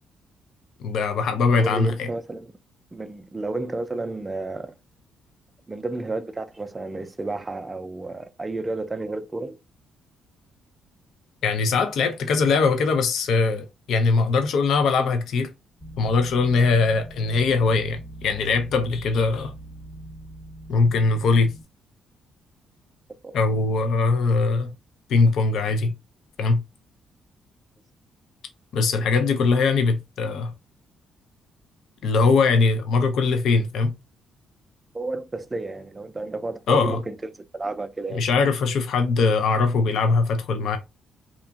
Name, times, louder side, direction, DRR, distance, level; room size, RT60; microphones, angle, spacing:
voice 1, 0.8-2.1 11.4-15.5 16.0-19.5 20.7-21.5 23.3-24.7 25.1-25.9 26.4-26.6 28.7-30.5 32.0-33.9 36.7-37.0 38.1-40.8, left 4 dB, 70° left, 0.4 m, -21 dB
voice 2, 1.6-2.5 2.9-4.7 5.7-9.6 23.2-23.3 34.9-38.2, right 2 dB, 20° right, 0.3 m, -31 dB
sound 1, 15.8-21.6, right 1 dB, 25° left, 1.1 m, -42 dB
2.8 x 2.4 x 2.3 m
cardioid pair, 90°, 0 cm